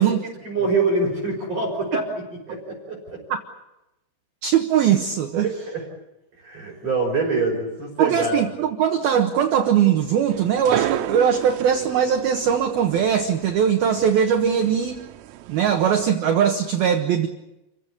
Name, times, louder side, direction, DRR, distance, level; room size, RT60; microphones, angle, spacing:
voice 1, 0.0-3.2 5.4-5.8 6.4-8.4, right 3 dB, 30° right, -2 dB, 6.1 m, -25 dB
voice 2, 4.4-5.5 8.0-15.0 15.5-17.3, right 8 dB, 65° right, 5 dB, 2.6 m, -20 dB
sound 1, 10.3-16.0, right 13 dB, 85° right, 3.8 m, -33 dB
29.5 x 16.5 x 9.9 m, 0.95 s
omnidirectional pair, 5.9 m